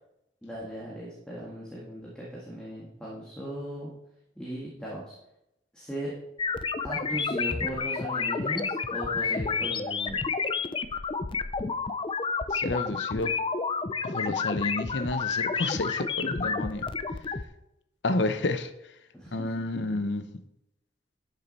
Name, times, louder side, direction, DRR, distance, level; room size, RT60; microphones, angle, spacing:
voice 1, 0.4-3.9 4.4-5.1 5.7-6.1 6.8-10.2 19.1-19.5, equal, 5° left, 1.9 m, -37 dB
sound 1, 6.4-17.4, left 5 dB, 30° left, 0.5 m, -30 dB
voice 2, 12.5-13.3 14.0-16.9 18.0-18.7 19.3-20.2, left 2 dB, 75° left, 0.8 m, -30 dB
12.0 x 6.4 x 4.2 m
head